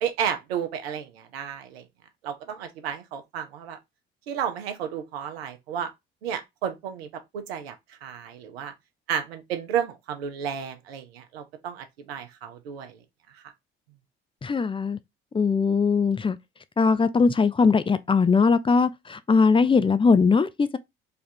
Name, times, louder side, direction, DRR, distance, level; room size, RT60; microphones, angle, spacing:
voice 1, 0.0-1.8 2.2-3.8 4.3-5.9 6.2-7.7 8.0-8.7 9.1-13.0 13.3-13.4, right 8 dB, 85° right, 0.6 m, -32 dB
voice 2, 14.4-15.0 15.3-16.4 16.8-20.8, left 5 dB, 20° left, 0.5 m, -20 dB
3.4 x 2.4 x 4.3 m
hypercardioid pair, 55°, 30 cm